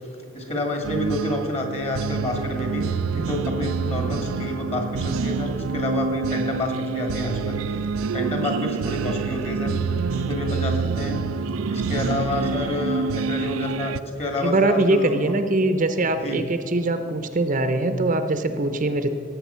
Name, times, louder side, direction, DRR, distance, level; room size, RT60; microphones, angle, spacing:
voice 1, 0.3-2.9 3.1-7.6 8.0-9.7 10.1-11.2 11.7-15.3 16.2-16.4, left 1 dB, 30° left, 3 dB, 2.1 m, -28 dB
sound 1, 0.8-14.0, right 5 dB, 90° right, 0.4 m, -27 dB
voice 2, 14.4-19.1, right 2 dB, 40° right, 9 dB, 0.7 m, -22 dB
17.5 x 7.7 x 5.6 m, 2.7 s
head